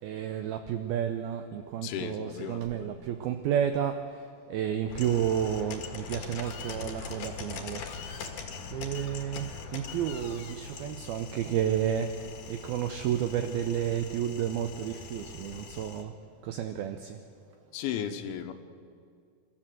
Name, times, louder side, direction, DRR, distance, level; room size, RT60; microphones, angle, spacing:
voice 1, 0.0-8.4 8.7-12.2 12.5-16.2 16.4-17.2, right 9 dB, 85° right, 8 dB, 2.1 m, -31 dB
voice 2, 1.8-3.0 17.7-18.5, left 9 dB, 85° left, 8 dB, 3.5 m, -35 dB
sound 1, 4.9-16.0, left 5 dB, 55° left, 2.5 m, -42 dB
27.0 x 13.5 x 7.8 m, 2.3 s
omnidirectional pair, 5.3 m